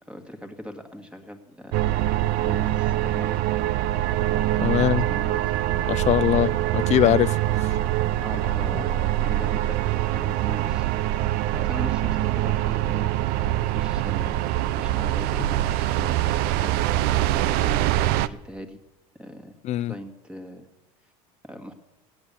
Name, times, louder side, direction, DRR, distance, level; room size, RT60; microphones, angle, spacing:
voice 1, 0.1-1.8 2.4-3.4 4.3-5.6 8.2-10.9 11.5-17.9 18.2-18.8 19.2-19.5 19.9-20.7 21.4-21.7, equal, 5° right, 1.9 m, -41 dB
sound 1, 1.7-18.3, right 14 dB, 60° right, 0.6 m, -24 dB
voice 2, 4.6-5.0 5.9-7.4 19.6-19.9, left 13 dB, 40° left, 0.4 m, -21 dB
17.0 x 9.2 x 6.9 m
supercardioid pair, 95°, 18 cm